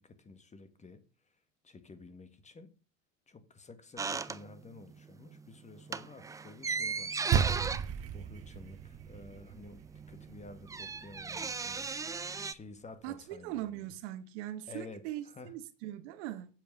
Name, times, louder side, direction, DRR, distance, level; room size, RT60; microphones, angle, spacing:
voice 1, 0.0-2.7 3.3-7.4 8.1-13.9 14.7-15.5, left 3 dB, 15° left, 1.5 m, -52 dB
sound 1, 4.0-4.9 5.2-5.4 5.8-9.3 9.5-9.6 9.8-12.5, right 5 dB, 10° right, 0.4 m, -37 dB
sound 2, 7.3-11.8, right 8 dB, 35° right, 1.0 m, -35 dB
voice 2, 13.0-16.5, right 13 dB, 60° right, 1.2 m, -40 dB
8.9 x 7.7 x 6.5 m
hypercardioid pair, 90°, 40 cm